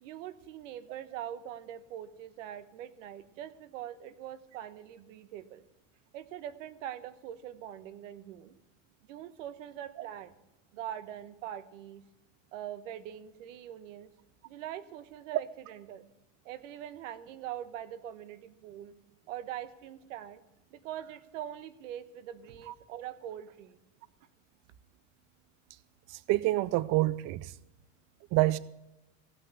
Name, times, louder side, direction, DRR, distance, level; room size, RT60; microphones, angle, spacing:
voice 1, 0.0-5.6 6.1-8.5 9.1-10.3 10.7-12.0 12.5-14.1 14.4-16.1 16.4-18.9 19.3-20.4 20.7-23.8, right 11 dB, 80° right, 1.1 m, -43 dB
voice 2, 26.1-27.5 28.3-28.6, right 17 dB, 45° right, 0.4 m, -27 dB
16.5 x 5.9 x 7.9 m
supercardioid pair, 110°, 37 cm